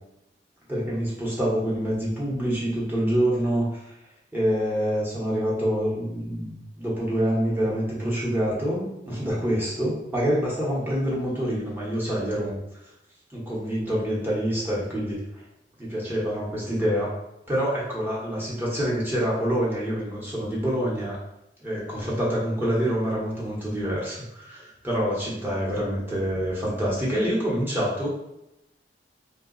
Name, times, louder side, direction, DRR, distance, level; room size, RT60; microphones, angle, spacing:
voice 1, 0.7-3.9 4.3-12.6 13.3-15.2 15.8-17.1 17.5-18.4 18.7-21.2 21.6-28.1, equal, 10° right, -6 dB, 1.0 m, -26 dB
2.8 x 2.3 x 3.9 m, 0.87 s
head